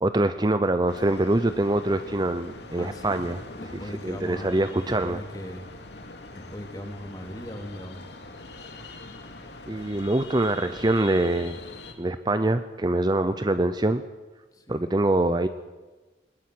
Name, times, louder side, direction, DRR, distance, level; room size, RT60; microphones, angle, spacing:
voice 1, 0.0-3.4 4.0-5.2 9.7-11.6 12.0-14.0 14.7-15.5, right 2 dB, 25° right, 11 dB, 0.7 m, -24 dB
sound 1, 0.9-11.9, left 2 dB, 70° left, 2.6 m, -43 dB
voice 2, 2.7-3.2 3.5-5.7 6.3-8.1 13.2-13.5 14.5-14.8, equal, 20° left, 3 dB, 3.1 m, -39 dB
20.5 x 20.0 x 7.9 m, 1.2 s
head